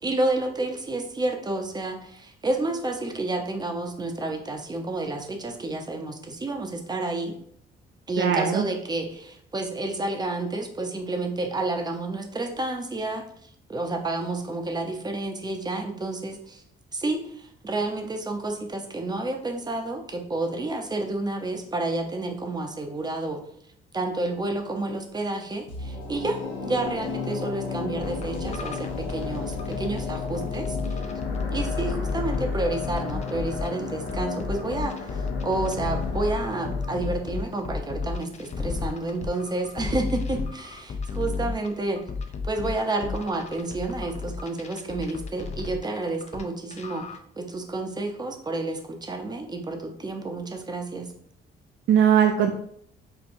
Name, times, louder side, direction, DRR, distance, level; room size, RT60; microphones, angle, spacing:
voice 1, 0.0-7.4 8.1-13.2 13.7-16.6 16.9-23.4 23.9-31.0 31.5-42.0 42.4-47.1 47.4-51.1, right 2 dB, 20° right, 4 dB, 0.6 m, -30 dB
voice 2, 8.2-8.6 51.9-52.5, right 8 dB, 70° right, 4 dB, 0.4 m, -19 dB
sound 1, 25.7-38.8 39.1-39.2, left 4 dB, 70° left, 0.8 m, -34 dB
sound 2, 28.0-33.7 34.1-46.4 46.7-47.2, left 4 dB, 35° left, 0.4 m, -32 dB
4.4 x 2.2 x 2.6 m, 0.66 s
cardioid pair, 90°, 20 cm